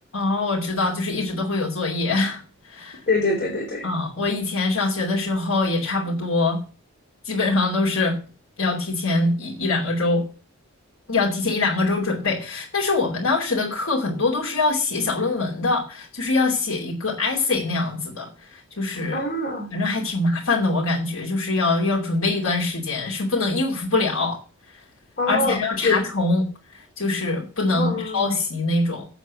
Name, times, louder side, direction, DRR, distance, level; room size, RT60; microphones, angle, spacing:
voice 1, 0.1-2.4 2.7-3.0 3.8-6.6 7.2-8.2 8.6-10.2 11.1-19.2 19.7-24.4 24.7-24.8 25.3-26.4 26.7-29.1, left 3 dB, 70° left, -3 dB, 2.8 m, -23 dB
voice 2, 3.1-3.9 19.1-19.7 25.2-26.0 27.7-28.4, left 3 dB, 45° left, 0 dB, 3.7 m, -25 dB
8.1 x 7.8 x 8.2 m, 0.36 s
head